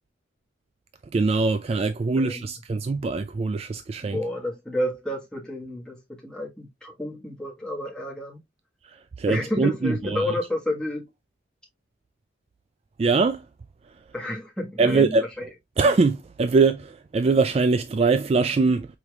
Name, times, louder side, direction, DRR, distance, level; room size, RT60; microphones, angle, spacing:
voice 1, 1.1-4.2 9.2-10.2 13.0-13.4 14.8-15.2 15.8-18.9, right 4 dB, 35° right, 0.3 m, -22 dB
voice 2, 2.2-2.5 4.0-8.4 9.3-11.1 14.1-15.5, left 1 dB, 5° left, 1.5 m, -30 dB
5.0 x 4.2 x 2.4 m
head